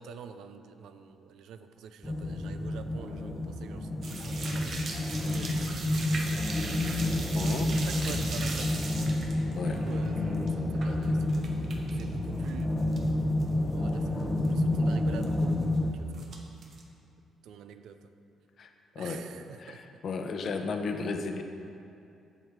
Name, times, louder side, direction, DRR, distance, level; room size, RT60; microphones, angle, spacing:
voice 1, 0.0-3.8 4.2-6.8 7.4-8.7 9.5-12.7 13.7-14.2 14.5-15.6 16.0-16.3 17.5-18.0 19.0-19.8, right 7 dB, 80° right, 9 dB, 0.4 m, -47 dB
sound 1, 2.0-15.9, left 1 dB, 15° left, 0.7 m, -29 dB
sound 2, 4.0-12.0 12.3-13.1 13.4-13.5 13.9-14.0 14.2-14.5 15.2-15.8 16.1-16.8, right 3 dB, 60° right, 1.0 m, -39 dB
voice 2, 7.3-7.7 9.5-9.8 18.6-18.7 19.0-19.2 19.6-21.4, left 4 dB, 55° left, 6 dB, 0.7 m, -34 dB
7.7 x 6.6 x 4.8 m, 2.7 s
cardioid pair, 90°, 0 cm